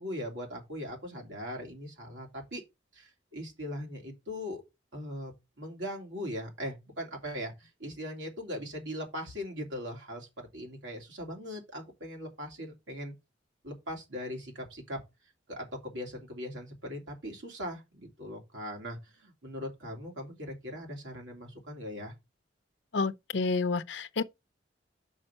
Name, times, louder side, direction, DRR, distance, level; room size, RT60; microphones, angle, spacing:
voice 1, 0.0-2.6 2.9-4.6 4.9-5.3 5.6-10.3 10.5-13.1 13.6-15.0 15.5-22.1, equal, 90° right, 3.0 m, -40 dB
voice 2, 22.9-24.2, left 4 dB, 75° left, 0.7 m, -29 dB
6.2 x 5.4 x 5.7 m
head